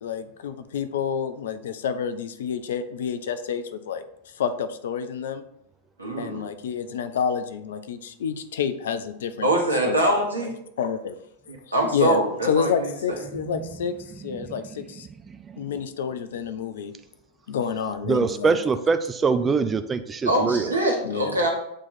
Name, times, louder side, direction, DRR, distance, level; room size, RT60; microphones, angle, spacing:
voice 1, 0.0-5.4 6.2-10.2 10.8-11.1 11.9-15.1 15.6-16.9 17.5-18.6 21.0-21.4, left 7 dB, 60° left, 11 dB, 0.5 m, -29 dB
voice 2, 6.0-6.4 9.4-10.6 11.5-12.9 20.2-21.5, right 1 dB, 80° right, 1 dB, 1.2 m, -23 dB
voice 3, 13.3-13.9 14.2-14.9 15.2-15.7 18.1-20.7, right 5 dB, 20° right, 10 dB, 0.3 m, -25 dB
7.5 x 3.0 x 4.2 m, 0.76 s
figure-of-eight pair, 90°, 0 cm